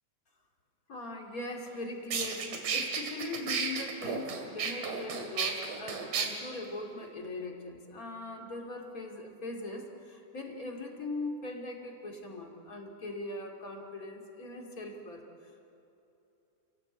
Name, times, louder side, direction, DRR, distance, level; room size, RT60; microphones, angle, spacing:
voice 1, 0.9-15.7, left 2 dB, 30° left, 2 dB, 2.8 m, -40 dB
sound 1, 1.7-1.8 2.1-6.3, right 6 dB, 80° right, 3.8 m, -33 dB
29.5 x 18.0 x 8.1 m, 2.9 s
omnidirectional pair, 3.6 m